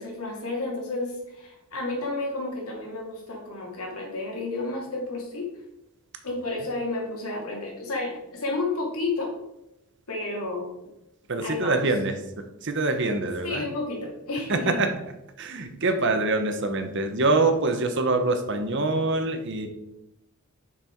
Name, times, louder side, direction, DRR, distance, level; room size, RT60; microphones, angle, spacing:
voice 1, 0.0-5.5 6.2-9.3 10.1-10.7 11.4-11.9 13.4-14.8, left 2 dB, 85° left, -1 dB, 2.5 m, -31 dB
voice 2, 11.3-13.6 14.5-14.9 15.4-19.7, right 2 dB, 55° right, 7 dB, 1.0 m, -25 dB
7.2 x 6.0 x 4.6 m, 0.89 s
head